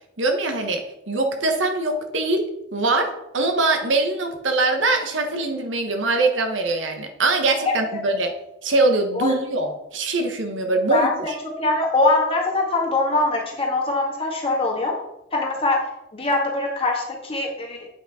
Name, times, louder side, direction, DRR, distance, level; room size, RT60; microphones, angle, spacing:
voice 1, 0.2-8.3 8.6-11.4, right 2 dB, 80° right, 4 dB, 1.2 m, -22 dB
voice 2, 10.9-15.0 15.3-17.9, left 2 dB, 30° left, -1 dB, 1.8 m, -22 dB
8.3 x 6.1 x 4.3 m, 0.87 s
head